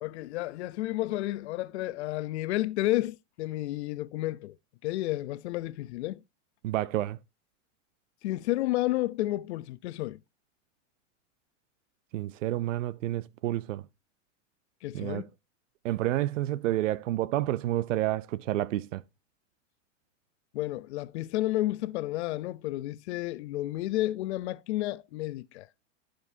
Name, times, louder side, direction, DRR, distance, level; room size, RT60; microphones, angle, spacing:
voice 1, 0.0-4.5 4.8-6.2 8.2-10.2 14.8-15.3 20.5-25.7, left 16 dB, 65° left, 0.7 m, -31 dB
voice 2, 6.6-7.2 12.1-13.8 14.9-15.3 15.8-19.0, right 14 dB, 85° right, 0.6 m, -29 dB
14.5 x 5.2 x 2.7 m
supercardioid pair, 145°, 37 cm